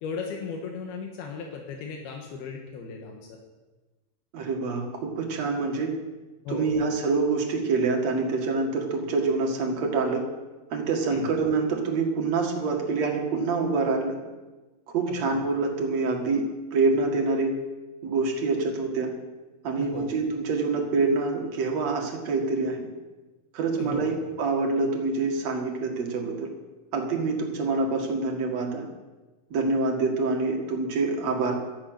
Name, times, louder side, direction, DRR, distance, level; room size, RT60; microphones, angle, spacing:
voice 1, 0.0-3.4 6.4-6.7 11.1-11.3 15.1-15.3 19.8-20.1 23.7-24.2, left 5 dB, 85° left, 2 dB, 3.3 m, -36 dB
voice 2, 4.3-5.9 6.5-10.2 10.7-14.2 14.9-17.6 18.0-19.1 19.6-22.8 23.5-26.5 26.9-28.8 29.5-31.6, right 3 dB, 50° right, 1 dB, 2.8 m, -26 dB
12.5 x 11.5 x 8.1 m, 1.2 s
omnidirectional pair, 4.4 m